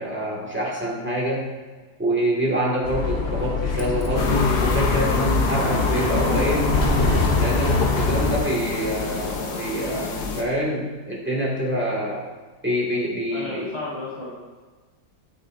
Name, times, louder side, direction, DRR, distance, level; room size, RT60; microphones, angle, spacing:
voice 1, 0.0-1.5 2.0-6.7 7.4-12.3 12.6-13.7, equal, 5° right, -5 dB, 1.5 m, -25 dB
Bus, 2.8-8.4, left 3 dB, 45° left, 0.8 m, -23 dB
sound 1, 4.2-10.4, left 4 dB, 65° left, 1.4 m, -27 dB
voice 2, 13.3-14.3, left 2 dB, 15° left, -13 dB, 2.8 m, -32 dB
12.5 x 6.5 x 2.5 m, 1.3 s
omnidirectional pair, 2.0 m